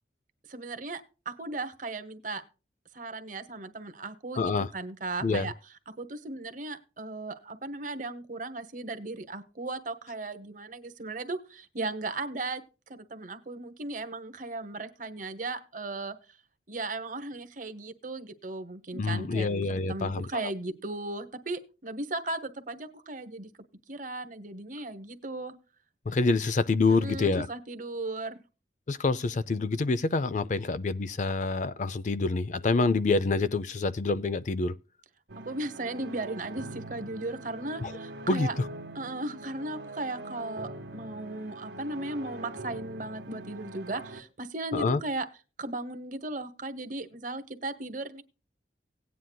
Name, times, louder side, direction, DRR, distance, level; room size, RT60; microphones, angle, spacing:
voice 1, 0.5-2.4 2.9-5.5 5.9-12.6 12.9-16.4 16.7-19.5 19.9-23.5 23.9-25.5 26.9-28.4 35.5-38.5 38.9-45.3 45.6-48.2, right 2 dB, 45° right, 1.0 m, -36 dB
voice 2, 4.4-4.7 5.2-5.5 18.9-20.5 26.1-27.5 28.9-34.7 37.8-37.9 38.3-38.7 44.7-45.0, left 3 dB, 40° left, 0.4 m, -27 dB
sound 1, 35.3-44.2, right 2 dB, 70° right, 1.0 m, -43 dB
17.5 x 9.3 x 2.2 m
head